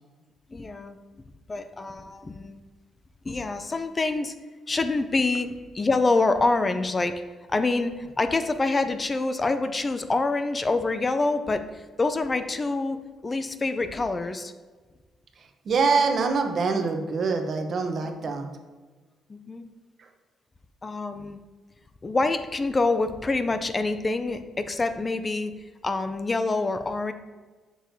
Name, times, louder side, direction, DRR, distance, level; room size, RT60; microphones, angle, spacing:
voice 1, 0.5-1.0 1.5-2.6 3.3-4.3 4.7-7.2 7.5-13.0 13.2-14.5 18.2-18.3 19.3-19.6 20.8-21.4 22.0-25.5 25.8-27.1, left 3 dB, 25° left, 9 dB, 0.4 m, -26 dB
voice 2, 15.6-18.5 20.0-20.1, right 4 dB, 50° right, 5 dB, 0.8 m, -24 dB
6.4 x 6.2 x 2.7 m, 1.3 s
cardioid pair, 100°, 0 cm